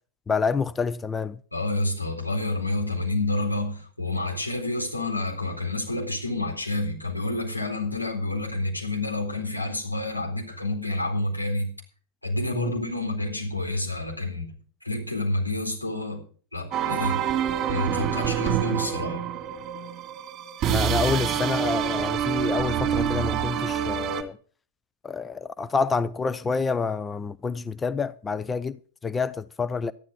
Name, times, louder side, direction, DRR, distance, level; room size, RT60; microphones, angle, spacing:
voice 1, 0.3-1.4 12.5-12.7 20.6-24.4 25.0-29.9, left 4 dB, 15° left, 0.5 m, -28 dB
voice 2, 1.5-11.7 12.2-14.5 14.8-16.2 16.5-17.2 17.7-19.2, left 2 dB, 85° left, 4.1 m, -29 dB
sound 1, 16.7-24.2, right 9 dB, 30° right, 2.3 m, -26 dB
13.5 x 11.5 x 5.1 m
figure-of-eight pair, 90°, 0 cm